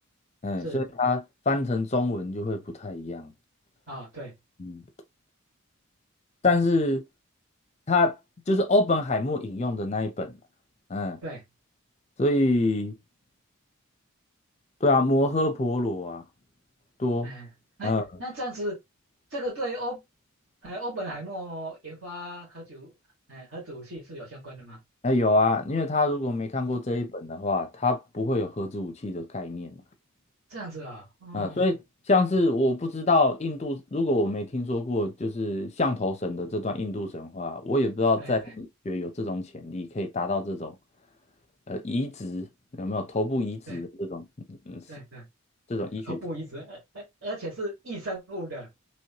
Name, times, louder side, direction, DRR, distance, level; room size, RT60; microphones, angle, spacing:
voice 1, 0.4-3.3 4.6-4.8 6.4-7.1 7.9-8.2 8.5-10.3 10.9-11.2 12.2-12.9 14.8-16.2 17.0-17.3 17.8-18.0 25.0-29.7 31.3-31.8 32.1-40.8 41.7-42.5 42.8-44.8 45.7-46.2, left 2 dB, 30° left, 0.6 m, -26 dB
voice 2, 3.9-4.3 11.2-11.4 17.2-17.5 17.8-17.9 18.2-18.8 19.3-20.0 20.6-22.9 23.3-24.8 26.9-27.0 30.5-31.6 38.2-38.5 43.7-43.8 44.9-45.2 46.0-48.7, right 1 dB, 60° right, 1.8 m, -36 dB
3.1 x 3.0 x 2.8 m
head